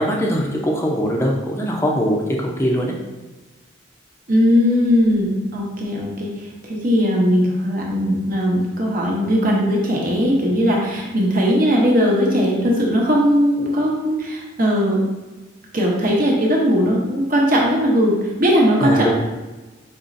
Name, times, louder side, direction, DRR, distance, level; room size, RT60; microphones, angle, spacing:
voice 1, 0.0-2.9 18.8-19.1, equal, 15° left, -1 dB, 0.5 m, -21 dB
voice 2, 4.3-15.0 15.7-19.1, equal, 45° right, -2 dB, 0.8 m, -18 dB
5.3 x 3.0 x 2.6 m, 1.2 s
head